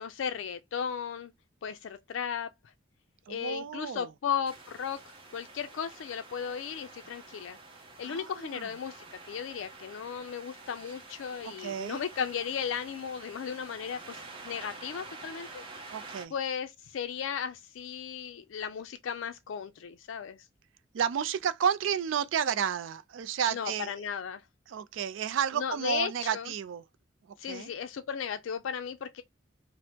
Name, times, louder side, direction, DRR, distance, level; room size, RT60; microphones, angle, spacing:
voice 1, 0.0-1.3 1.6-2.5 3.3-5.0 5.3-7.6 8.0-15.6 16.3-20.5 23.5-24.4 25.5-26.5 27.4-29.2, left 7 dB, 75° left, 0.4 m, -35 dB
voice 2, 3.3-4.1 8.0-8.7 11.6-12.0 15.9-16.3 20.9-24.0 24.7-26.8 27.5-27.7, right 8 dB, 75° right, 0.3 m, -31 dB
sound 1, 4.5-16.3, right 3 dB, 25° right, 0.8 m, -48 dB
2.8 x 2.0 x 3.3 m
head